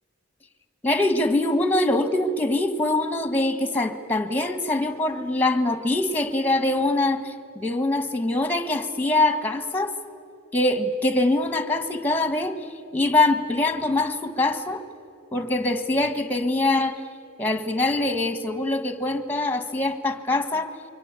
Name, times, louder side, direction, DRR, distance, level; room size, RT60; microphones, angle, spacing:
voice 1, 0.8-9.9 10.5-12.5 12.9-14.8 15.3-17.0 17.4-20.7, left 2 dB, 10° left, 9 dB, 1.5 m, -23 dB
28.0 x 23.5 x 8.3 m, 2.4 s
head